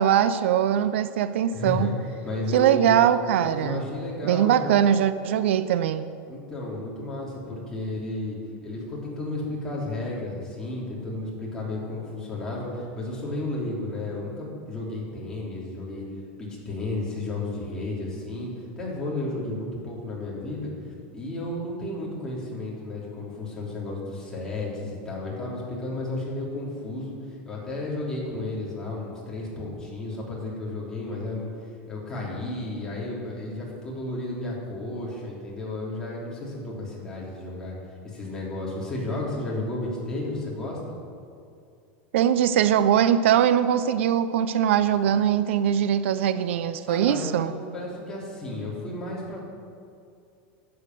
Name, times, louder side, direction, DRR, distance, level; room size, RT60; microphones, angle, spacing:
voice 1, 0.0-2.0 2.5-3.8 4.2-6.0 42.1-47.5, right 9 dB, 90° right, 13 dB, 0.6 m, -21 dB
voice 2, 1.5-1.9 2.2-2.9 3.4-4.7 6.3-8.4 8.6-16.1 16.4-20.7 21.1-31.5 31.9-37.8 38.0-41.0 46.9-49.4, left 2 dB, 10° left, -6 dB, 3.4 m, -33 dB
11.5 x 8.6 x 7.6 m, 2.4 s
supercardioid pair, 160°, 6 cm